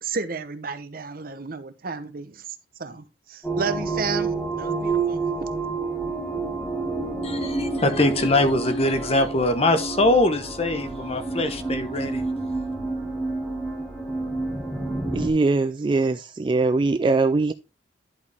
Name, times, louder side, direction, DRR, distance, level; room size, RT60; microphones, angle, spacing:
voice 1, 0.0-2.4 2.8-5.5, right 5 dB, 55° right, 0.8 m, -32 dB
sound 1, 3.4-15.3, right 3 dB, 5° left, 1.9 m, -29 dB
voice 2, 7.2-12.2, left 2 dB, 35° left, 0.9 m, -22 dB
voice 3, 15.1-17.5, right 3 dB, 25° right, 0.3 m, -21 dB
11.0 x 5.0 x 3.4 m
head